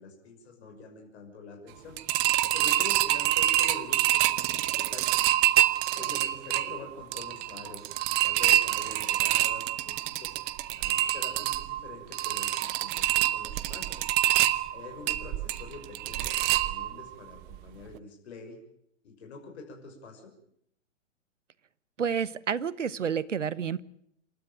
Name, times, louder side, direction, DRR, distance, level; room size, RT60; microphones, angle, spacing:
voice 1, 0.0-2.0 2.5-5.1 5.9-10.4 10.8-14.1 14.7-18.6 19.0-20.3, left 3 dB, 55° left, 3 dB, 6.2 m, -46 dB
sound 1, 2.0-17.1 17.5-17.6 18.0-18.1, right 15 dB, 25° right, 0.9 m, -26 dB
voice 2, 22.0-23.8, right 7 dB, 75° right, 19 dB, 1.2 m, -29 dB
28.0 x 13.0 x 9.0 m, 0.71 s
figure-of-eight pair, 115°, 38 cm